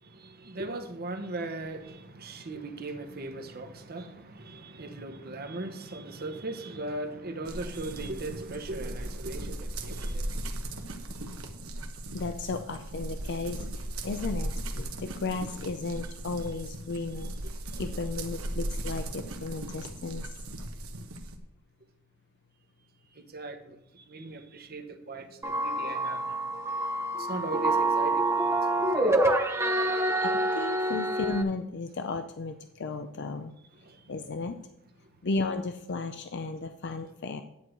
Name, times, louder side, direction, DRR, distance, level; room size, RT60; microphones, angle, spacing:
voice 1, 0.0-11.2 21.0-21.1 23.1-26.5 27.2-29.4 33.8-34.1, right 2 dB, 45° right, 1.0 m, -39 dB
sound 1, 7.4-21.4, right 1 dB, 85° right, 1.2 m, -37 dB
voice 2, 12.1-17.3 17.8-20.2 30.2-33.5 34.1-34.5 35.2-37.4, left 3 dB, 55° left, 0.5 m, -34 dB
sound 2, 25.4-31.4, right 2 dB, 15° right, 0.8 m, -27 dB
10.0 x 4.6 x 7.8 m
head